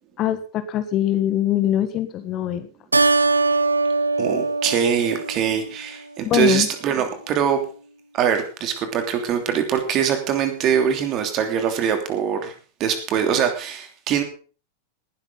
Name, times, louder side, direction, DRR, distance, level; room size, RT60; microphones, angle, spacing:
voice 1, 0.2-2.7 6.2-6.7, left 11 dB, 35° left, 10 dB, 1.5 m, -22 dB
Keyboard (musical), 2.9-5.8, right 3 dB, 80° right, 0.7 m, -21 dB
voice 2, 4.2-7.6 8.1-12.5 12.8-14.2, right 8 dB, 35° right, 6 dB, 3.0 m, -23 dB
19.0 x 11.5 x 3.9 m, 0.38 s
figure-of-eight pair, 90°, 0 cm